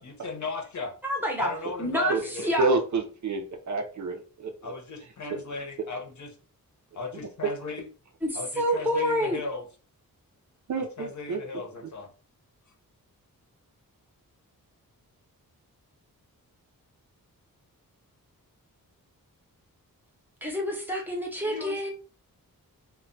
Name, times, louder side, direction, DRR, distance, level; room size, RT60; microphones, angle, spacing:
voice 1, 0.0-0.9 1.4-2.5 4.6-6.4 6.9-7.9 8.3-9.7 10.8-12.1 21.4-21.9, left 3 dB, 55° left, 3 dB, 0.7 m, -36 dB
voice 2, 1.0-1.5 1.8-2.2 2.4-2.7 8.2-9.4 20.4-21.9, equal, 5° right, -1 dB, 0.7 m, -27 dB
voice 3, 2.6-4.7 10.7-11.4, right 3 dB, 55° right, 5 dB, 0.5 m, -28 dB
2.2 x 2.2 x 3.8 m, 0.37 s
wide cardioid pair, 155°, 36 cm